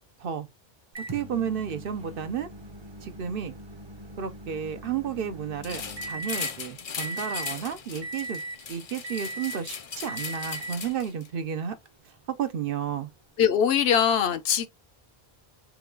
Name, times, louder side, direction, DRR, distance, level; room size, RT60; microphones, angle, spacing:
Microwave oven, 1.0-6.6 7.0-7.6 8.0-8.6 9.0-9.7 10.1-10.9 11.9-12.0 14.0-14.1, right 2 dB, 30° right, 0.7 m, -39 dB
voice 1, 1.1-2.5 3.0-3.5 4.2-8.4 8.7-11.8 12.4-13.1, right 8 dB, 65° right, 0.8 m, -32 dB
sound 1, 5.6-11.3, left 6 dB, 45° left, 0.5 m, -38 dB
voice 2, 13.4-14.7, left 8 dB, 75° left, 0.9 m, -22 dB
6.0 x 2.3 x 3.7 m
omnidirectional pair, 1.1 m